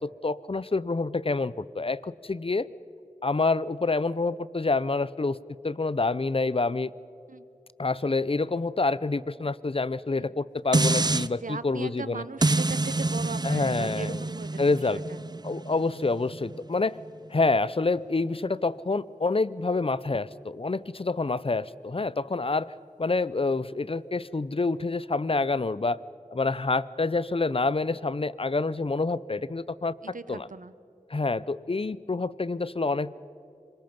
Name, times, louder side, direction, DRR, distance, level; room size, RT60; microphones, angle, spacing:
voice 1, 0.0-2.7 3.2-5.4 5.6-6.9 7.8-12.2 13.4-14.2 14.6-15.0 15.4-17.0 17.3-22.7 23.0-26.0 26.3-30.0 30.3-30.5 31.1-33.2, left 3 dB, 45° left, 18 dB, 0.6 m, -27 dB
sound 1, 10.7-11.3 12.4-17.6 18.0-18.1, right 2 dB, 30° right, 0.5 m, -28 dB
voice 2, 11.4-14.6 14.9-15.2 30.0-30.7, right 4 dB, 80° right, 14 dB, 0.8 m, -38 dB
26.0 x 23.0 x 5.3 m, 2.7 s
wide cardioid pair, 50°, 13 cm